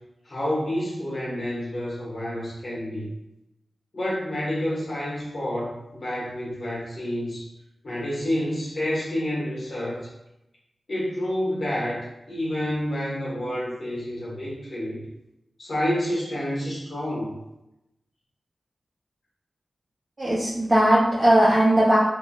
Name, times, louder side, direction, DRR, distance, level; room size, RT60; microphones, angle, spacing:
voice 1, 0.2-3.1 3.9-7.5 7.8-10.1 10.9-15.0 15.6-17.4, left 1 dB, 65° left, -7 dB, 1.1 m, -29 dB
voice 2, 20.2-22.0, right 1 dB, 35° right, -8 dB, 0.7 m, -18 dB
3.0 x 2.8 x 2.3 m, 0.89 s
cardioid pair, 55°, 0 cm